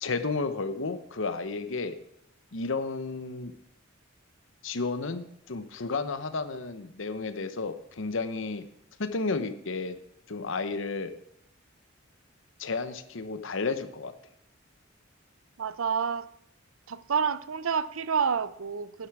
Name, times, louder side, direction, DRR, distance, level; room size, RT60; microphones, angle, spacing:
voice 1, 0.0-2.0 2.5-3.5 4.6-8.6 9.0-10.0 10.3-11.1 12.6-14.1, left 4 dB, 70° left, 0.9 m, -32 dB
voice 2, 15.6-16.3 16.9-19.1, right 6 dB, 90° right, 0.6 m, -29 dB
12.0 x 9.8 x 4.8 m
head